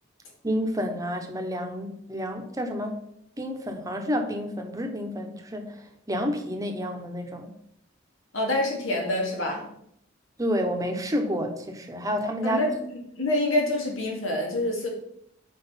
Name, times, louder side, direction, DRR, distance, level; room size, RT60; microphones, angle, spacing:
voice 1, 0.4-3.0 3.4-5.7 6.1-7.5 10.4-12.6, equal, 15° right, 4 dB, 0.9 m, -29 dB
voice 2, 8.3-9.7 12.4-12.8 13.2-14.9, left 1 dB, 90° left, 0 dB, 2.2 m, -26 dB
6.0 x 4.7 x 5.6 m, 0.71 s
head